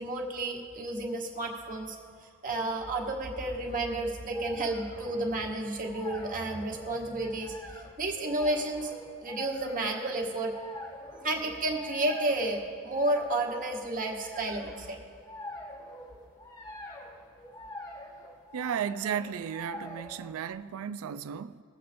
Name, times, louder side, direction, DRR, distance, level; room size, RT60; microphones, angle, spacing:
voice 1, 0.0-2.0 2.4-7.5 8.0-8.9 9.2-10.5 11.2-15.0, right 2 dB, 40° right, 1.2 m, -31 dB
sound 1, 3.4-20.5, left 1 dB, 20° left, 1.2 m, -46 dB
voice 2, 18.5-21.6, right 8 dB, 70° right, 0.3 m, -34 dB
22.0 x 7.7 x 2.6 m
head